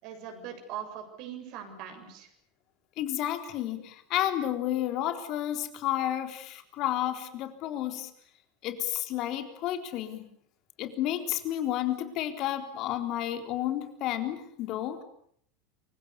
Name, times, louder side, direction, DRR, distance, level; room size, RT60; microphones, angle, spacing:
voice 1, 0.0-2.3, right 8 dB, 55° right, 5 dB, 7.7 m, -41 dB
voice 2, 3.0-8.1 8.6-10.2 10.8-15.0, left 12 dB, 50° left, 7 dB, 3.9 m, -31 dB
28.5 x 24.5 x 7.0 m, 0.67 s
figure-of-eight pair, 80°, 0 cm